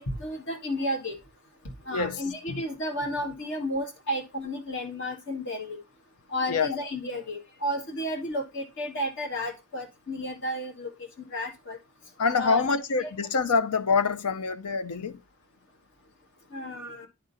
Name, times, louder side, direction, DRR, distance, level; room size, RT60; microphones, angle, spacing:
voice 1, 0.1-1.1 1.9-5.8 6.3-10.9 11.3-11.8 12.3-12.6 16.5-17.1, left 1 dB, 55° left, 1.7 m, -32 dB
voice 2, 1.9-2.6 6.5-6.8 12.2-15.2, left 4 dB, 85° left, 0.6 m, -26 dB
10.5 x 3.8 x 4.0 m
head